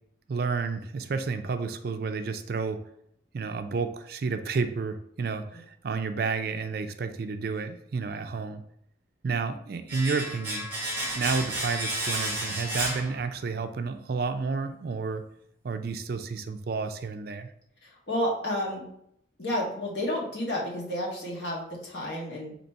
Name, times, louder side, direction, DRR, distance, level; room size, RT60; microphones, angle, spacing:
voice 1, 0.3-2.8 3.3-8.6 9.2-10.7 11.2-15.2 15.6-17.5, right 4 dB, 50° right, 8 dB, 0.4 m, -31 dB
Domestic sounds home sounds, 9.9-13.7 14.0-14.1, right 1 dB, 10° right, 1.0 m, -32 dB
voice 2, 17.8-18.8 19.4-22.5, left 1 dB, 65° left, -4 dB, 1.5 m, -31 dB
4.1 x 2.9 x 4.4 m, 0.72 s
head